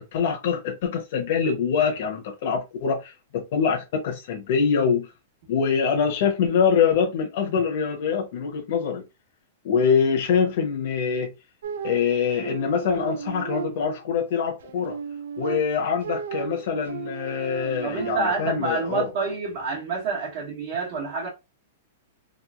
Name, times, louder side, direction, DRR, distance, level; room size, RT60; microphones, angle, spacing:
voice 1, 0.0-5.1 5.5-9.0 9.6-11.3 11.8-15.0 15.4-19.1, left 6 dB, 55° left, 0.7 m, -24 dB
sound 1, 11.6-14.2 14.6-18.5, right 7 dB, 80° right, 0.3 m, -35 dB
voice 2, 17.8-21.3, right 4 dB, 50° right, 1.0 m, -28 dB
3.0 x 2.3 x 2.4 m
hypercardioid pair, 150°, 0 cm